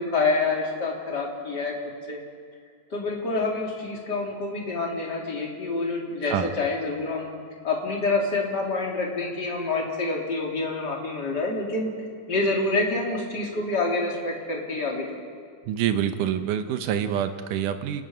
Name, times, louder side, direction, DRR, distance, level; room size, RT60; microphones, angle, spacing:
voice 1, 0.0-1.7 2.1-2.2 2.9-7.3 7.6-11.9 12.3-15.1, left 3 dB, 35° left, -1 dB, 3.6 m, -27 dB
voice 2, 15.7-18.0, right 9 dB, 90° right, 8 dB, 2.5 m, -26 dB
29.0 x 19.0 x 5.1 m, 2.2 s
omnidirectional pair, 3.6 m